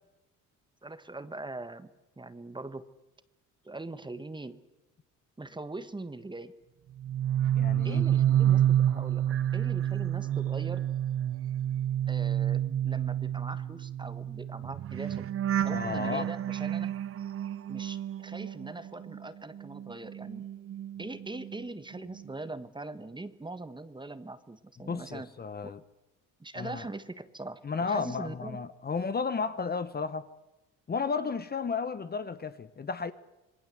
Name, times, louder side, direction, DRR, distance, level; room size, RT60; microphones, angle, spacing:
voice 1, 0.8-1.9 2.2-2.9 3.6-4.6 5.4-6.5 7.8-10.9 12.1-15.3 15.6-17.0 17.7-20.5 21.0-25.3 25.6-25.7 26.4-28.6, right 2 dB, 15° right, 1.5 m, -41 dB
sound 1, 7.0-19.2 19.5-21.6 21.9-22.3, right 11 dB, 40° right, 0.7 m, -29 dB
voice 2, 7.6-8.1 15.7-16.3 24.8-25.8 26.5-26.8 27.6-30.3 30.9-33.1, left 5 dB, 30° left, 1.1 m, -33 dB
27.0 x 20.0 x 7.8 m
cardioid pair, 100°, 33 cm